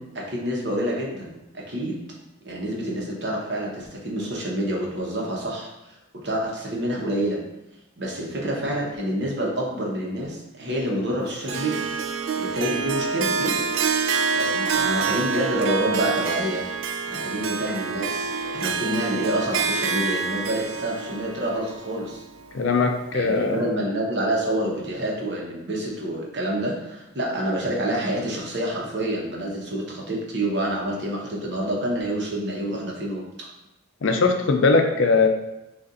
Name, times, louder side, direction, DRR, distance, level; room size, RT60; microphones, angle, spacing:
voice 1, 0.0-2.0 2.4-7.4 8.0-11.9 12.4-13.7 14.3-16.7 17.1-22.2 23.1-33.2, right 1 dB, 55° right, -2 dB, 0.9 m, -28 dB
Harp, 11.5-22.7, right 5 dB, 75° right, 0.3 m, -27 dB
voice 2, 22.5-23.6 34.0-35.3, left 4 dB, 70° left, 5 dB, 0.5 m, -20 dB
6.6 x 2.5 x 2.5 m, 0.92 s
head